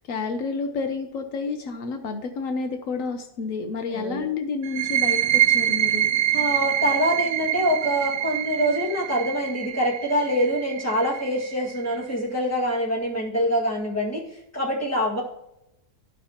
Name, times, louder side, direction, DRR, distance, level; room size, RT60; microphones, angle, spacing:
voice 1, 0.0-6.1, left 4 dB, 75° left, 6 dB, 1.0 m, -30 dB
voice 2, 3.9-4.3 6.3-15.2, equal, 10° left, -5 dB, 1.9 m, -25 dB
sound 1, 4.6-12.0, right 12 dB, 85° right, 1.0 m, -25 dB
13.0 x 5.2 x 2.9 m, 0.85 s
omnidirectional pair, 1.4 m